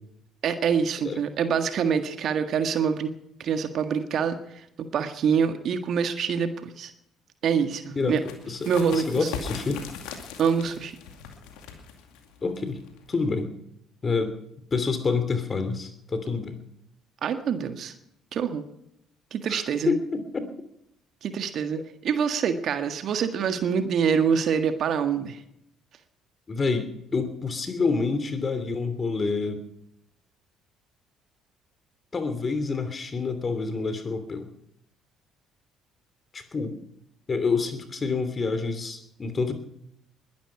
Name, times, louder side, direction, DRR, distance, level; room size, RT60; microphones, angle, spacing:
voice 1, 0.4-3.1 3.4-4.4 4.8-6.9 7.4-8.2 8.7-9.3 10.4-11.0 17.2-17.9 18.3-18.6 19.3-19.9 21.2-25.4, right 7 dB, 55° right, 8 dB, 1.6 m, -25 dB
sound 1, 8.0-13.4, left 6 dB, 70° left, 2.3 m, -40 dB
voice 2, 8.5-9.8 12.4-13.5 14.0-14.3 14.7-16.6 19.5-20.5 26.5-29.6 32.1-34.5 36.3-36.8 37.3-39.5, left 4 dB, 35° left, 10 dB, 3.0 m, -28 dB
21.0 x 11.5 x 5.9 m, 0.77 s
hypercardioid pair, 50°, 0 cm